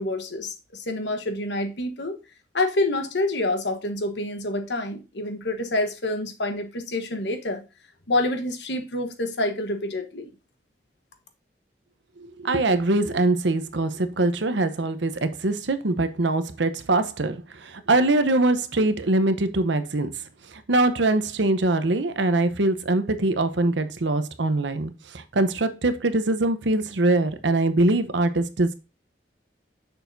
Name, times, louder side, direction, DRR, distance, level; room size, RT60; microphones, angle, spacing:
voice 1, 0.0-2.2 2.5-7.6 8.1-10.3, left 2 dB, 75° left, 1.2 m, -27 dB
voice 2, 12.2-20.1 20.5-28.7, right 2 dB, 80° right, 0.9 m, -23 dB
6.9 x 6.3 x 2.6 m
head